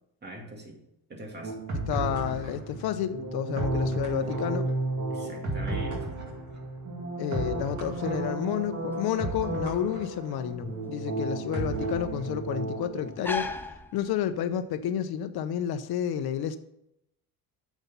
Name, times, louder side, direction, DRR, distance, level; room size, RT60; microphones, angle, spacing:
voice 1, 0.2-0.8 1.1-1.7 5.1-6.0, right 1 dB, 25° right, 1 dB, 2.2 m, -42 dB
sound 1, 1.4-13.3, right 2 dB, 45° right, 2.3 m, -33 dB
voice 2, 1.9-4.7 7.2-13.6 13.9-16.6, left 10 dB, 65° left, 10 dB, 0.8 m, -30 dB
sound 2, 7.6-14.6, left 3 dB, 5° left, 0.4 m, -41 dB
9.7 x 7.3 x 5.5 m, 0.82 s
cardioid pair, 160°, 40 cm